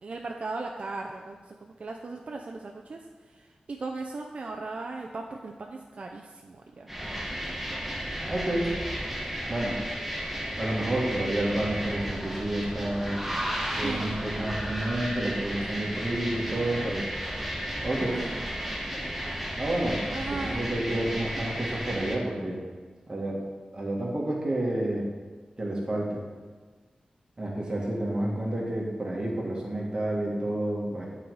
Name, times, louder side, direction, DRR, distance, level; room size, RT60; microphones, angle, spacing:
voice 1, 0.0-6.9 13.7-14.2 18.1-18.6 20.1-20.6, right 3 dB, 55° right, 1 dB, 0.5 m, -37 dB
sound 1, 6.9-22.2, equal, 5° right, 1.0 m, -33 dB
voice 2, 8.3-8.7 9.5-9.8 10.6-13.2 13.8-17.0 17.8-18.2 19.6-20.0 20.3-22.6 23.1-23.4 23.7-25.1 25.6-26.2 27.4-31.1, right 1 dB, 30° right, -3 dB, 1.8 m, -29 dB
8.6 x 4.0 x 4.8 m, 1.5 s
wide cardioid pair, 90°, 3 cm